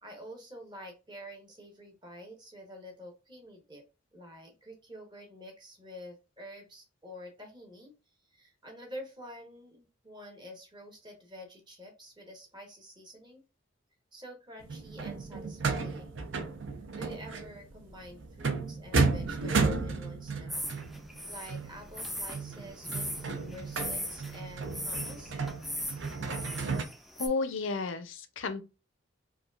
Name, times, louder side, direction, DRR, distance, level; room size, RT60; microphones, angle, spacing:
voice 1, 0.0-3.8 4.1-7.9 8.3-13.4 14.1-16.2 17.0-20.6 21.3-25.4, equal, 25° right, 0.9 m, -48 dB
sound 1, 14.6-26.8, right 4 dB, 70° right, 0.6 m, -33 dB
sound 2, 20.5-27.3, equal, ahead, 0.4 m, -39 dB
voice 2, 27.2-28.6, left 4 dB, 70° left, 0.5 m, -32 dB
4.8 x 2.3 x 2.3 m
head